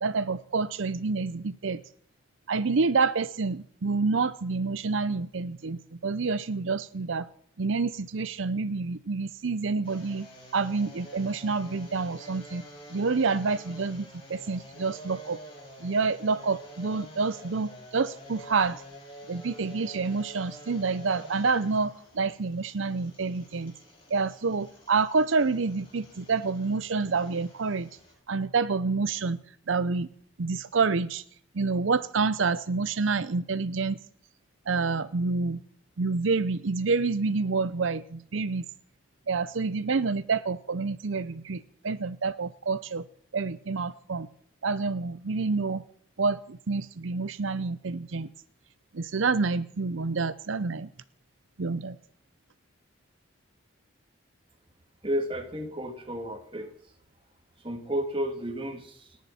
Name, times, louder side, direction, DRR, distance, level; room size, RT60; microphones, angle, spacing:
voice 1, 0.0-1.8 2.5-7.3 7.6-10.3 10.5-12.6 12.9-15.4 15.8-18.8 19.3-23.7 24.1-27.9 28.3-29.4 29.7-30.1 30.4-31.2 31.5-34.0 34.7-35.6 36.0-38.6 39.3-43.0 43.3-44.3 44.6-45.8 46.2-48.3 48.9-50.9 51.6-52.0, right 4 dB, 75° right, 14 dB, 0.6 m, -28 dB
sound 1, 9.8-28.1, equal, 25° left, 6.8 m, -48 dB
voice 2, 55.0-56.7 57.6-59.2, equal, 25° right, 5 dB, 2.2 m, -32 dB
30.0 x 10.5 x 4.3 m, 0.63 s
head